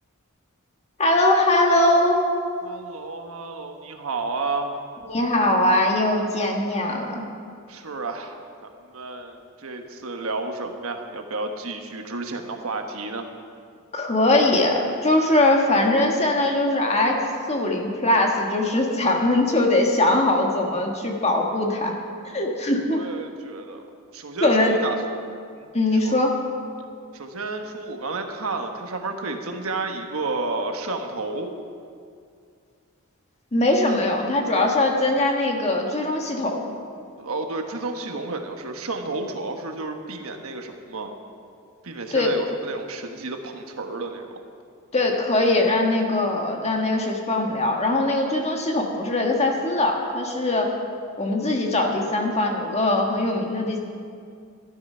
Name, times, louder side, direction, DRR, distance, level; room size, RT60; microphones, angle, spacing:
voice 1, 1.0-2.2 5.1-7.2 13.9-21.9 22.3-23.0 24.4-24.7 25.7-26.3 33.5-36.6 42.1-42.3 44.9-50.7 51.2-53.8, left 2 dB, 30° left, 1 dB, 1.6 m, -21 dB
voice 2, 2.6-4.8 7.7-8.4 8.6-13.3 22.8-23.8 24.1-25.0 25.6-25.7 26.0-26.1 27.1-31.5 37.2-41.1 41.8-44.4, right 3 dB, 75° right, 4 dB, 1.2 m, -31 dB
13.0 x 12.0 x 5.6 m, 2.3 s
head